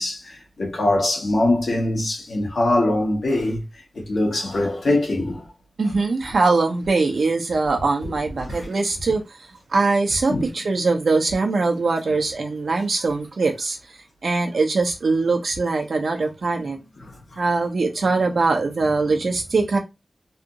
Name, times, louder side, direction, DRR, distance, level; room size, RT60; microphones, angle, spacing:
voice 1, 0.0-3.6 4.0-5.4 8.0-8.1 8.4-8.7 10.3-10.5 17.0-17.1, left 1 dB, 80° left, 1.2 m, -22 dB
voice 2, 5.8-16.9 17.4-19.8, right 3 dB, 80° right, 0.9 m, -22 dB
3.3 x 2.5 x 3.0 m
wide cardioid pair, 65°, 0 cm